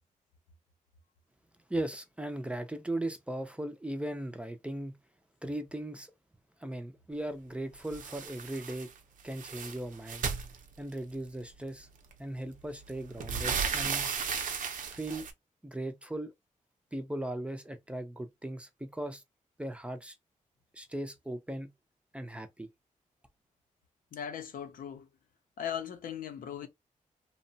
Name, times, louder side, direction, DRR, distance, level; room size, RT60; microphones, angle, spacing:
voice 1, 1.7-5.0 5.4-6.1 6.6-8.9 9.2-10.3 10.8-11.9 12.2-14.1 14.9-15.3 15.6-16.3 16.9-19.2 19.6-20.1 20.7-21.7 22.1-22.7, right 1 dB, 10° right, 0.4 m, -38 dB
sound 1, 7.9-8.9 9.2-11.2 12.1-12.2 12.6-15.3, right 6 dB, 70° right, 0.6 m, -35 dB
voice 2, 24.1-25.1 25.6-26.7, left 9 dB, 85° left, 0.6 m, -38 dB
2.8 x 2.1 x 2.6 m
wide cardioid pair, 145°, 14 cm